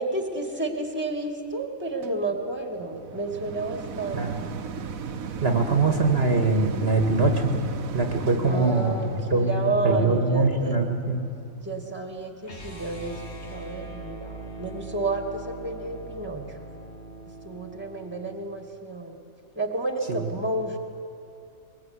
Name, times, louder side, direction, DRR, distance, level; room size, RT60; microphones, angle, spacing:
voice 1, 0.0-4.6 8.5-10.8 11.6-13.2 13.5-16.5 17.4-19.2 19.6-20.8, right 3 dB, 10° right, 4 dB, 2.4 m, -31 dB
sound 1, 2.0-13.3 13.9-14.0, right 6 dB, 75° right, 1.4 m, -38 dB
voice 2, 5.4-7.6 7.9-8.9 9.3-11.2 20.1-20.3, right 3 dB, 45° right, 4 dB, 2.0 m, -23 dB
sound 2, 12.4-18.5, right 2 dB, 50° left, 3.0 m, -41 dB
22.5 x 21.5 x 9.8 m, 2.6 s
omnidirectional pair, 1.4 m